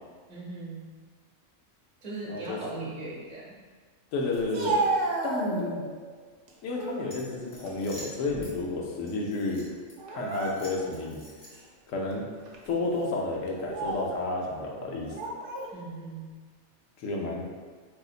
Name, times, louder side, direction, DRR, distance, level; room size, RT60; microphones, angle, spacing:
voice 1, 0.3-0.9 2.0-3.5 15.7-16.3, right 3 dB, 40° right, -5 dB, 0.9 m, -38 dB
voice 2, 4.1-4.8 5.2-5.8 6.6-9.7 10.1-11.2 11.9-12.2 12.7-15.2 17.0-17.5, left 2 dB, 85° left, -1 dB, 1.0 m, -31 dB
Speech, 4.3-6.0 6.5-7.1 7.5-8.7 9.0-9.2 10.0-11.0 11.5-11.7 12.4-12.7 13.5-14.2 15.0-15.7, right 3 dB, 60° right, 0.6 m, -32 dB
sound 1, 7.1-8.5 9.1-9.9 10.3-11.7, left 1 dB, 50° left, 1.0 m, -47 dB
3.8 x 2.7 x 2.4 m, 1.5 s
omnidirectional pair, 1.3 m